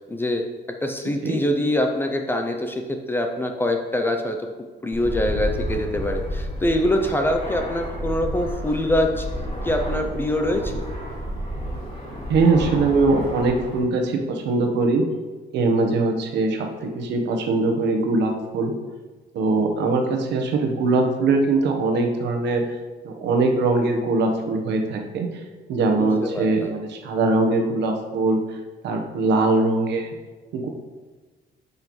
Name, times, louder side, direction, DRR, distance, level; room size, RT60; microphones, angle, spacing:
voice 1, 0.1-0.4 0.8-2.8 3.1-4.4 4.8-9.3 9.6-10.8 26.0-26.7, left 1 dB, 10° left, 4 dB, 0.4 m, -24 dB
Fixed-wing aircraft airplane, 4.9-13.8, equal, 30° left, 2.2 m, -31 dB
voice 2, 12.3-15.0 15.5-18.7 19.3-22.8 23.0-25.3 25.7-28.4 28.8-30.1 30.5-30.7, right 3 dB, 70° right, 3 dB, 1.1 m, -21 dB
9.2 x 5.5 x 3.1 m, 1.3 s
cardioid pair, 175°, 19 cm